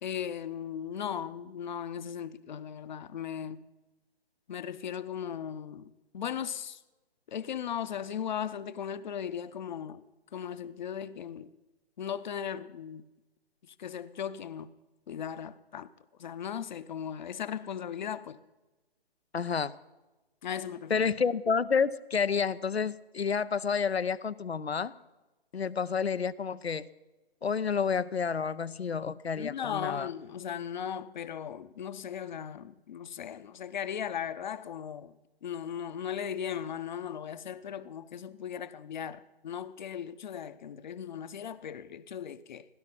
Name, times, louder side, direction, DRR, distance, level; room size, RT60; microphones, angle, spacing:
voice 1, 0.0-3.6 4.5-6.8 7.3-10.0 10.3-11.5 12.0-13.1 13.7-14.7 15.1-15.9 16.2-18.4 20.4-21.1 29.4-35.1 35.4-42.7, left 8 dB, 45° left, 0.8 m, -37 dB
voice 2, 19.3-19.7 20.9-24.9 25.5-26.9 27.4-30.1, left 6 dB, 85° left, 0.7 m, -29 dB
18.0 x 10.5 x 5.6 m
figure-of-eight pair, 135°, 31 cm